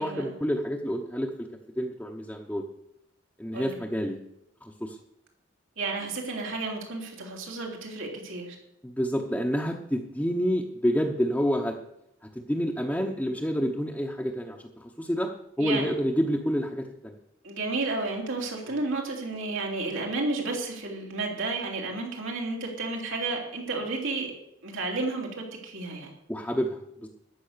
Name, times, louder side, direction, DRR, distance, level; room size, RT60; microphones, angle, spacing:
voice 1, 0.0-1.5 1.8-2.6 3.4-4.2 4.6-5.0 8.8-11.8 12.3-15.3 15.6-17.1 26.3-27.1, equal, 5° left, 0 dB, 0.9 m, -28 dB
voice 2, 5.8-8.6 15.6-15.9 17.4-24.3 24.6-26.1, right 3 dB, 80° right, 0 dB, 3.4 m, -32 dB
14.0 x 9.5 x 6.7 m, 0.81 s
head